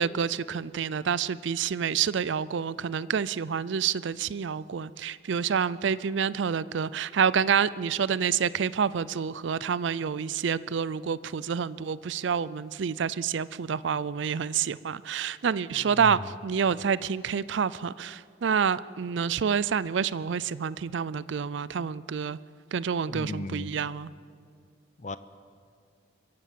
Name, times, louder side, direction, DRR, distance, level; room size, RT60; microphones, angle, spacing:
voice 1, 0.0-22.4 22.7-24.1, right 7 dB, 70° right, 18 dB, 0.4 m, -28 dB
voice 2, 15.8-16.2 23.1-23.7 25.0-25.2, left 2 dB, 35° left, 14 dB, 0.7 m, -36 dB
24.5 x 15.5 x 7.5 m, 2.3 s
head